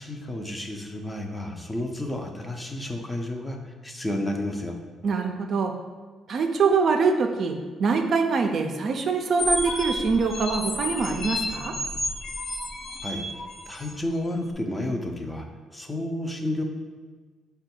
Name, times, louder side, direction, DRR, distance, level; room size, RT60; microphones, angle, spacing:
voice 1, 0.0-4.8 13.0-13.2 13.7-15.4 15.7-16.6, left 1 dB, 15° left, 3 dB, 0.5 m, -31 dB
voice 2, 5.0-5.7 6.3-11.7, right 4 dB, 55° right, 4 dB, 0.4 m, -24 dB
sound 1, 9.4-13.9, left 1 dB, 45° left, 0.9 m, -31 dB
4.4 x 2.2 x 4.3 m, 1.4 s
cardioid pair, 90°, 0 cm